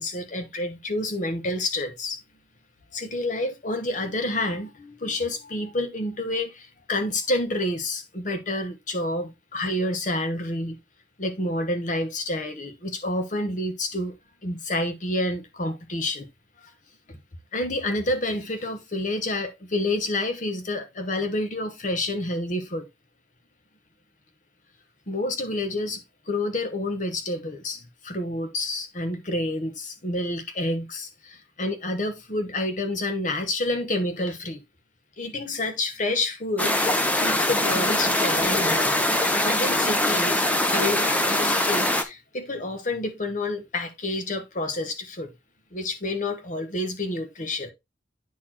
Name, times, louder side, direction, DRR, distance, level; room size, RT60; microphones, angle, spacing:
voice 1, 0.0-2.2 2.9-10.8 11.2-14.1 14.4-16.3 17.1-17.2 17.5-22.9 25.1-34.6 35.2-39.1 39.4-45.3 45.7-47.7, left 2 dB, 45° left, 1.1 m, -29 dB
sound 1, 36.6-42.0, left 1 dB, 10° left, 0.7 m, -22 dB
9.5 x 4.2 x 2.9 m
head